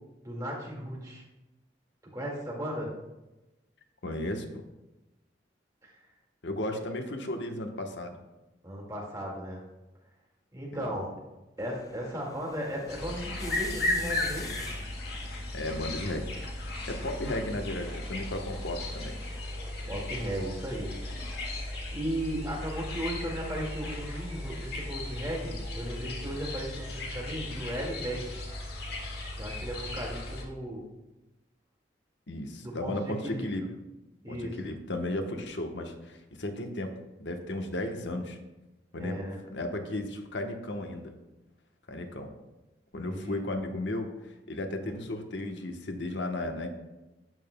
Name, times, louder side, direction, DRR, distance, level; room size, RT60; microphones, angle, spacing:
voice 1, 0.2-1.2 2.0-2.9 5.8-6.0 8.6-9.6 10.5-11.1 11.6-14.7 17.2-17.4 19.9-20.9 21.3-28.4 29.4-30.8 32.6-33.5 34.2-34.5 39.0-39.4 43.0-43.4, equal, 20° right, -3 dB, 1.9 m, -36 dB
voice 2, 4.0-4.6 6.4-8.2 10.7-10.9 15.5-16.4 16.9-19.2 32.3-33.7 34.3-38.4 38.9-39.2 39.5-41.1 41.9-42.3 42.9-46.7, left 1 dB, 90° left, 4 dB, 1.0 m, -34 dB
sound 1, 11.6-19.4, left 4 dB, 20° left, 0.4 m, -49 dB
sound 2, 12.9-30.4, left 2 dB, 60° left, 1.8 m, -36 dB
12.0 x 9.0 x 2.2 m, 1.0 s
head